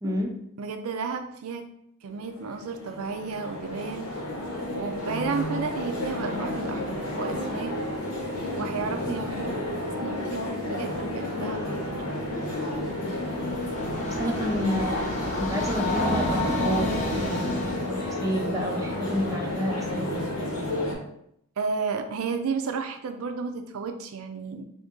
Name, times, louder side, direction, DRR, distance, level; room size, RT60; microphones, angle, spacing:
voice 1, 0.0-0.3 14.1-16.9 17.2-20.3, equal, 15° right, 2 dB, 0.4 m, -30 dB
voice 2, 0.6-1.6 2.0-4.1 4.7-7.7 8.5-9.6 10.0-12.1 21.6-24.6, right 5 dB, 80° right, 6 dB, 0.4 m, -32 dB
sound 1, 2.1-20.9, left 1 dB, 75° left, 0.9 m, -31 dB
Train, 13.0-17.9, left 1 dB, 30° left, 0.6 m, -30 dB
2.8 x 2.6 x 3.6 m, 0.74 s
head